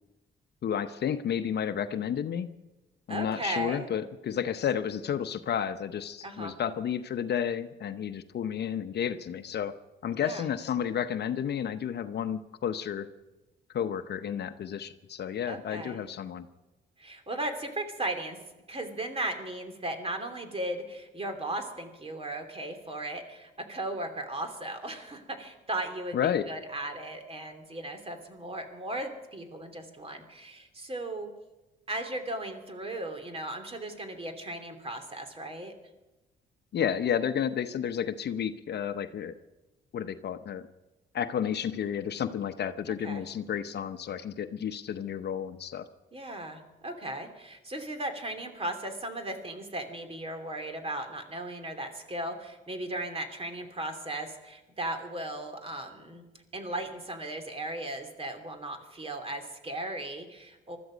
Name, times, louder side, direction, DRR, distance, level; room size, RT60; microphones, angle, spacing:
voice 1, 0.6-2.5 3.1-9.7 10.0-13.1 13.7-16.5 26.1-26.4 36.7-39.4 39.9-40.7 41.1-45.9, left 8 dB, 55° left, 10 dB, 0.8 m, -31 dB
voice 2, 3.1-3.9 6.2-6.6 10.2-10.4 15.5-16.0 17.0-18.4 18.7-31.3 31.9-35.7 43.0-43.2 46.1-56.2 56.5-60.8, right 1 dB, 30° right, 6 dB, 2.8 m, -36 dB
20.5 x 13.5 x 5.1 m, 1.0 s
cardioid pair, 90°, 20 cm